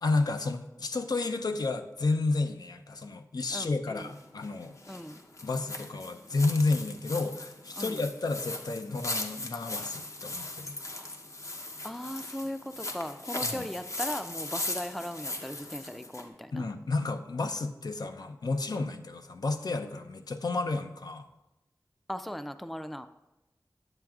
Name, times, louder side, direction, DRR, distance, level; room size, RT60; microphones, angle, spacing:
voice 1, 0.0-4.8 5.4-10.8 13.4-13.7 16.5-21.3, left 3 dB, 80° left, 7 dB, 0.5 m, -31 dB
voice 2, 3.5-4.1 4.9-5.2 7.8-8.0 11.8-16.7 18.7-18.9 22.1-23.1, left 1 dB, ahead, 10 dB, 0.3 m, -38 dB
sound 1, 4.0-16.3, left 2 dB, 50° left, 0.7 m, -38 dB
8.9 x 7.8 x 2.4 m, 0.96 s
wide cardioid pair, 70°, 7 cm